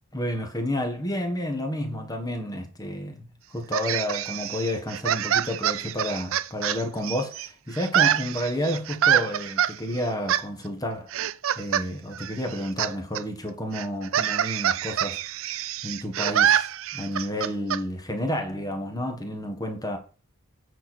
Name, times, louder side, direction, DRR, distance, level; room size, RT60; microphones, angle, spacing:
voice 1, 0.1-11.1 11.5-15.2 15.8-20.0, left 1 dB, 15° left, 1.5 m, -30 dB
sound 1, 3.7-7.5 7.8-9.7 10.3-10.4 11.1-11.9 12.1-12.9 13.2-13.3 13.7-17.8, right 10 dB, 60° right, 0.4 m, -25 dB
9.0 x 4.5 x 6.2 m
head